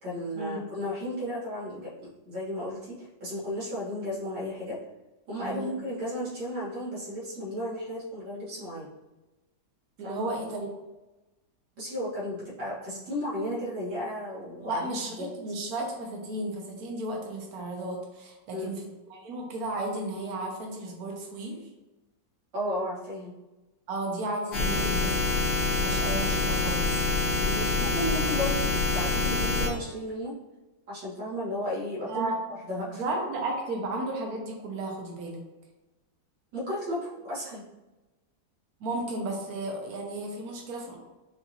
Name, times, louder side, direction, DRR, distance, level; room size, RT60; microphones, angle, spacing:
voice 1, 0.0-4.8 5.3-8.9 10.0-10.3 11.8-15.3 18.5-18.7 22.5-23.3 27.4-30.4 30.9-32.3 32.7-33.0 36.5-37.6, equal, 90° right, -9 dB, 2.5 m, -34 dB
voice 2, 5.4-5.8 10.0-10.7 14.6-18.8 19.1-21.6 23.9-25.4 25.7-27.0 32.1-32.5 32.9-35.4 38.8-41.0, right 2 dB, 60° right, 0 dB, 1.3 m, -34 dB
sound 1, 24.5-29.7, left 3 dB, 80° left, 2.0 m, -26 dB
6.5 x 2.6 x 3.0 m, 1.1 s
omnidirectional pair, 2.0 m